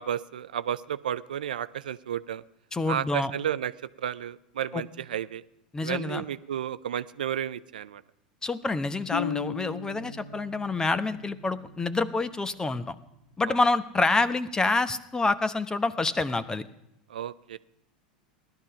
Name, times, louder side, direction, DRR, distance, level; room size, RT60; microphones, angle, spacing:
voice 1, 0.0-2.4 2.9-3.7 4.0-5.4 5.8-8.0 13.5-13.6 17.1-17.6, right 10 dB, 80° right, 15 dB, 0.6 m, -32 dB
voice 2, 2.7-3.3 4.7-4.8 5.7-6.2 8.4-13.0 13.4-16.6, left 3 dB, 15° left, 14 dB, 1.0 m, -27 dB
sound 1, 9.1-12.9, left 7 dB, 70° left, 1.3 m, -38 dB
17.0 x 12.0 x 5.6 m, 0.83 s
hypercardioid pair, 85°, 5 cm